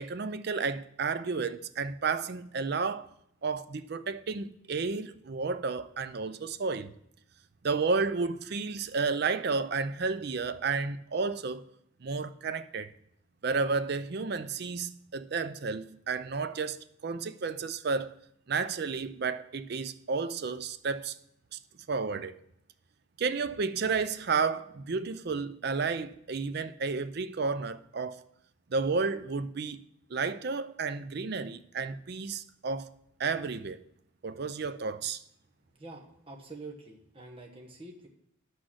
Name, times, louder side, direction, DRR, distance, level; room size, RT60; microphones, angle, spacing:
voice 1, 0.0-3.1 3.4-6.9 7.6-11.6 12.0-12.9 13.4-18.1 18.5-21.2 21.5-21.6 21.9-22.3 23.2-28.2 28.7-29.8 30.1-32.9 33.2-33.8 34.2-35.2, right 4 dB, 50° right, 0.5 m, -32 dB
voice 2, 35.7-38.1, right 2 dB, 25° right, 1.3 m, -46 dB
11.0 x 6.3 x 6.2 m
head